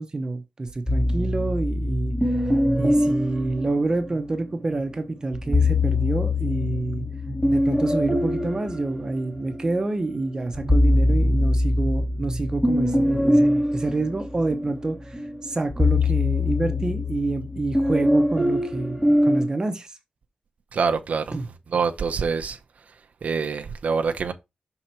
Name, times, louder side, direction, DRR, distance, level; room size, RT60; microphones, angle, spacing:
voice 1, 0.0-2.1 2.8-7.0 7.5-20.0 21.3-21.5, right 2 dB, 25° right, 0.8 m, -27 dB
sound 1, 0.9-4.4 5.3-9.8 10.2-19.5, left 1 dB, ahead, 1.7 m, -23 dB
voice 2, 20.7-21.3 21.7-22.6 23.2-24.3, right 5 dB, 70° right, 0.7 m, -25 dB
6.0 x 3.9 x 4.4 m
wide cardioid pair, 170°, 3 cm